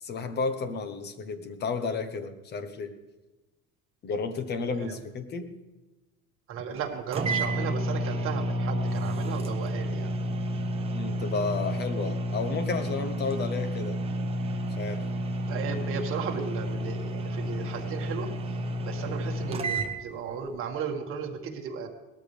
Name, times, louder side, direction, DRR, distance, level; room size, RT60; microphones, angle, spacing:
voice 1, 0.0-2.9 4.0-5.5 10.9-14.0 14.8-15.0, left 4 dB, 35° left, 9 dB, 1.1 m, -32 dB
voice 2, 6.5-10.1 15.5-18.3 18.8-21.9, right 7 dB, 45° right, 1 dB, 1.8 m, -35 dB
sound 1, 6.8-6.9 7.1-19.9, right 1 dB, 20° right, 0.9 m, -30 dB
18.5 x 13.5 x 3.4 m, 1.1 s
cardioid pair, 170°, 30 cm